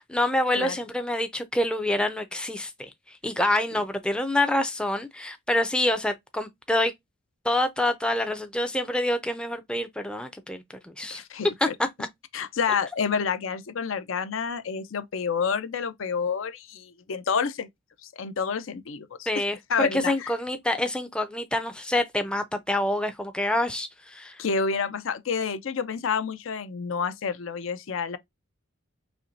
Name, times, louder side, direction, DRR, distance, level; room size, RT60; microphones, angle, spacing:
voice 1, 0.0-6.9 7.4-11.2 11.6-11.9 19.3-24.4, left 1 dB, 5° left, 0.4 m, -27 dB
voice 2, 11.1-11.7 12.3-17.7 18.1-19.4 19.7-20.3 24.4-28.2, left 6 dB, 70° left, 0.5 m, -29 dB
4.3 x 3.0 x 2.5 m
head